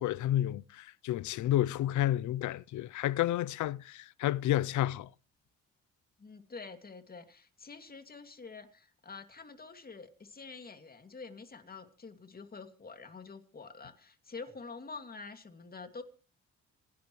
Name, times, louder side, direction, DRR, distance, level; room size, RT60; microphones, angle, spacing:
voice 1, 0.0-5.1, left 13 dB, 75° left, 0.6 m, -30 dB
voice 2, 6.2-16.0, left 4 dB, 30° left, 2.5 m, -47 dB
27.0 x 10.5 x 3.2 m
cardioid pair, 90°, 30 cm